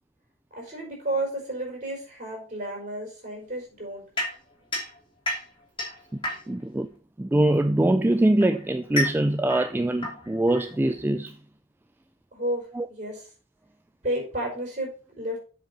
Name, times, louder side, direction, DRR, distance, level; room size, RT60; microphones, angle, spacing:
voice 1, 0.5-4.1 12.3-13.2 14.0-14.9 15.2-15.4, right 1 dB, 40° right, 4.7 m, -32 dB
sound 1, 4.2-6.8 7.8-11.2, left 1 dB, 25° left, 2.8 m, -33 dB
voice 2, 6.5-6.9 7.2-11.4 12.7-12.9, right 1 dB, 10° right, 0.3 m, -23 dB
7.6 x 5.3 x 5.3 m
head